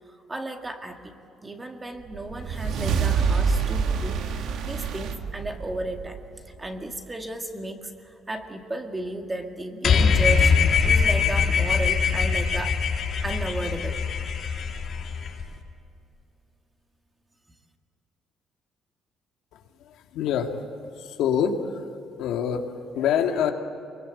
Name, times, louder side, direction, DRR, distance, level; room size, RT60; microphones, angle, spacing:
voice 1, 0.3-1.1 1.4-6.2 6.6-7.9 8.3-12.7 13.2-14.0, right 1 dB, 15° right, 4 dB, 2.0 m, -34 dB
sound 1, 2.1-6.7, right 5 dB, 75° right, 2.0 m, -27 dB
sound 2, 9.8-15.4, left 5 dB, 50° left, 2.6 m, -22 dB
voice 2, 19.5-20.5 21.0-21.9 22.2-23.5, left 8 dB, 85° left, 4 dB, 2.2 m, -26 dB
24.0 x 22.5 x 8.6 m, 2.8 s
cardioid pair, 145°, 0 cm